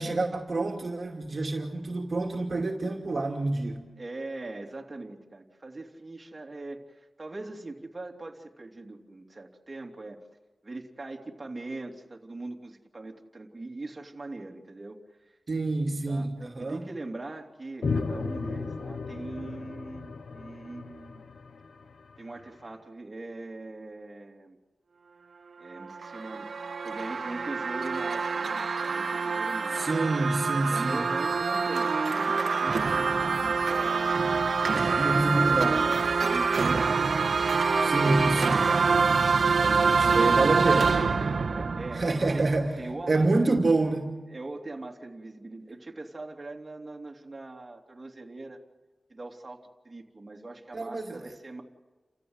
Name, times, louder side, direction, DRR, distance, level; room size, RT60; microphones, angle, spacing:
voice 1, 0.0-3.9 15.5-16.8 29.7-31.0 34.9-36.0 37.8-38.7 40.0-41.0 41.9-42.7 43.1-44.1 50.7-51.2, right 2 dB, 55° right, 1 dB, 2.6 m, -27 dB
voice 2, 4.0-10.2 10.6-15.0 15.2-15.4 16.1-16.3 16.6-21.2 22.2-24.6 25.6-30.1 30.7-34.3 35.0-35.6 36.2-37.3 41.4-42.1 42.3-42.5 42.8-43.6 44.3-48.6 49.1-51.6, right 2 dB, 35° right, 0 dB, 3.0 m, -41 dB
sound 1, 17.8-22.5, left 4 dB, 80° left, 1.2 m, -35 dB
sound 2, 25.8-42.7, right 4 dB, 75° right, 1.4 m, -26 dB
30.0 x 14.5 x 8.1 m, 1.3 s
cardioid pair, 60°, 0 cm